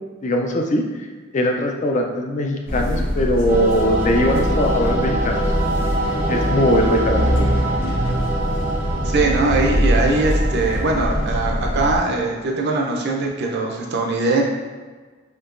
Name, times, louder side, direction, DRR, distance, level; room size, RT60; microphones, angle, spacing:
voice 1, 0.2-1.0 1.3-5.4 6.3-7.5, left 1 dB, 35° left, 2 dB, 0.4 m, -21 dB
sound 1, 2.7-12.0, equal, 85° left, 1.1 m, -23 dB
sound 2, 3.5-11.4, right 1 dB, 10° right, 0.6 m, -26 dB
voice 2, 9.0-14.4, right 3 dB, 55° right, 0 dB, 0.6 m, -21 dB
4.5 x 2.8 x 2.5 m, 1.4 s
head